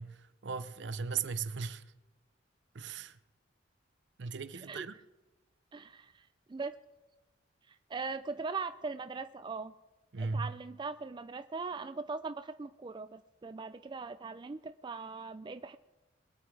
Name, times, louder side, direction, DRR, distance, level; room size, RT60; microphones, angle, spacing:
voice 1, 0.0-1.8 2.7-3.2 4.2-4.9 10.1-10.5, right 5 dB, 65° right, 0.6 m, -37 dB
voice 2, 5.7-6.8 7.7-9.7 10.2-15.8, right 4 dB, 25° right, 0.3 m, -40 dB
22.0 x 8.0 x 4.7 m
head